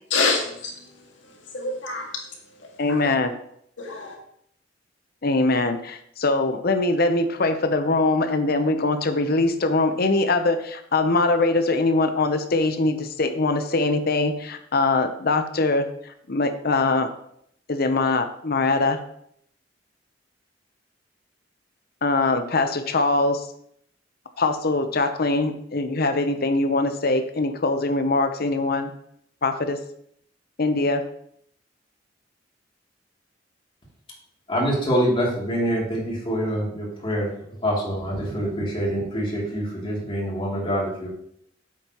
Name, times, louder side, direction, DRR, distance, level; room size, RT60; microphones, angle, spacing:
voice 1, 0.1-3.1 3.8-4.2, left 3 dB, 85° left, 0 dB, 2.0 m, -28 dB
voice 2, 2.8-3.3 5.2-17.1 17.7-19.0 22.0-23.5 24.4-28.9 29.4-29.8 30.6-31.0, left 3 dB, 55° left, 8 dB, 0.8 m, -22 dB
voice 3, 34.5-41.1, equal, 30° left, -4 dB, 2.9 m, -25 dB
9.1 x 7.7 x 3.0 m, 0.70 s
head